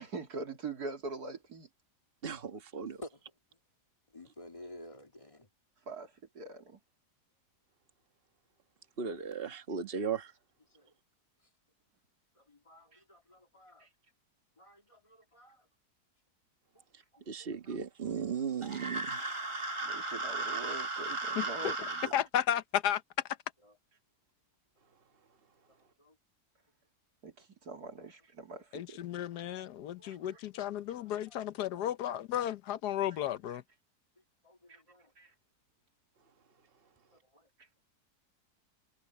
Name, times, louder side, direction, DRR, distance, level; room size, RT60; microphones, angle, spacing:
voice 1, 0.0-1.7 5.9-6.1 6.3-6.8 9.9-10.1 12.9-13.0 13.8-13.9 19.8-22.1 27.2-29.0 30.0-30.2 34.7-34.8 35.2-35.3, right 3 dB, 75° right, 3.4 m, -43 dB
voice 2, 2.2-3.0 9.0-10.3 17.3-19.3, right 6 dB, 35° right, 1.7 m, -36 dB
voice 3, 2.8-3.2 4.1-5.5 10.7-10.9 12.5-13.9 14.6-15.6 16.7-16.8 17.1-17.8 18.0-18.1 26.0-26.1 28.0-28.1 29.3-29.5 30.0-30.2 34.4-35.1 37.1-37.5, left 1 dB, 20° left, 2.2 m, -53 dB
sound 1, 18.6-22.1, right 2 dB, 20° right, 1.6 m, -36 dB
voice 4, 21.4-21.7 22.1-23.0 28.7-33.6, left 11 dB, 90° left, 1.4 m, -33 dB
omnidirectional pair, 1.7 m